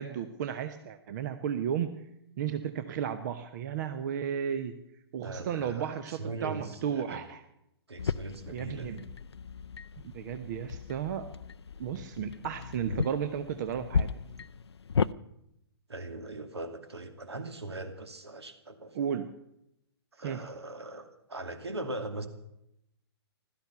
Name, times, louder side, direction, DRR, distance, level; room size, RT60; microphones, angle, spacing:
voice 1, 0.0-1.9 2.4-4.7 5.1-7.4 8.5-9.0 10.1-11.2 11.8-14.1 18.9-19.3 20.2-20.4, right 8 dB, 45° right, 10 dB, 1.0 m, -33 dB
voice 2, 5.2-7.2 7.9-9.0 15.9-19.1 20.1-22.3, right 2 dB, 75° right, 8 dB, 2.4 m, -40 dB
sound 1, 8.0-15.1, left 6 dB, 75° left, 0.5 m, -35 dB
16.0 x 13.0 x 6.9 m, 0.81 s
figure-of-eight pair, 120°, 14 cm